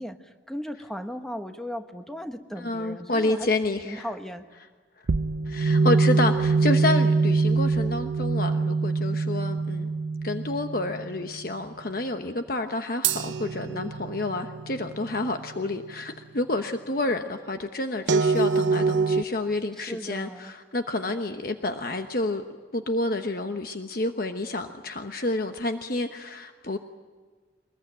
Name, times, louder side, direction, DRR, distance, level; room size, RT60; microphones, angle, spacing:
voice 1, 0.0-3.5 3.8-4.5 19.8-20.5, equal, 5° left, 6 dB, 1.3 m, -36 dB
voice 2, 2.6-4.0 5.5-9.9 10.2-22.4 22.7-26.8, left 2 dB, 50° left, 6 dB, 1.0 m, -29 dB
sound 1, 5.1-11.3 13.0-15.8 18.1-19.2, right 4 dB, 75° right, 0.7 m, -24 dB
24.0 x 21.0 x 9.1 m, 1.5 s
head